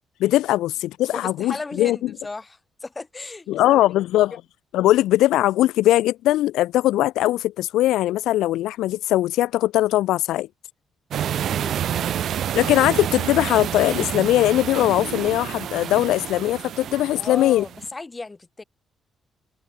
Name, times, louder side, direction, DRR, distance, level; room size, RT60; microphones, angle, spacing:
voice 1, 0.2-2.0 3.5-4.4 4.7-10.5 12.5-17.6, left 15 dB, 90° left, 1.0 m, -20 dB
voice 2, 1.1-3.8 11.2-12.3 17.1-18.6, left 3 dB, 20° left, 5.6 m, -36 dB
sound 1, 11.1-17.9, right 10 dB, 70° right, 1.3 m, -28 dB
cardioid pair, 90°, 0 cm